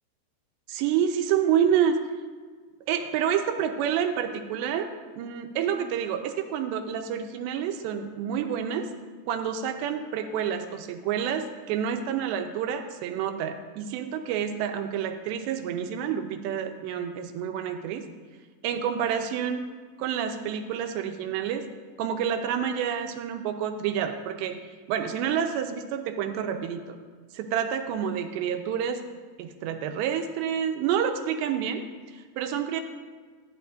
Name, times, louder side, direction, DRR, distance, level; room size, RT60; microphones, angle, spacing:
voice 1, 0.7-2.0 2.9-4.9 5.2-8.9 9.3-18.0 18.6-19.6 20.0-21.6 22.0-24.6 24.9-27.0 27.3-29.0 29.4-31.9 32.1-32.8, right 8 dB, 80° right, 6 dB, 2.7 m, -28 dB
14.5 x 11.0 x 2.6 m, 1.5 s
omnidirectional pair, 5.2 m